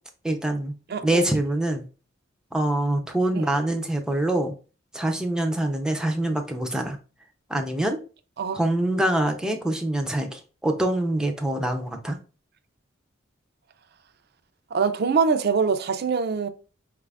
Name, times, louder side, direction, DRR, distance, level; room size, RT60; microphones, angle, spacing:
voice 1, 0.2-0.7 1.0-1.8 2.5-4.5 4.9-7.0 7.5-8.0 8.5-12.2, right 1 dB, 5° right, 0.6 m, -25 dB
voice 2, 0.9-1.2 3.3-3.5 8.4-8.6 14.7-16.5, right 5 dB, 55° right, 0.5 m, -23 dB
4.8 x 2.5 x 3.4 m
head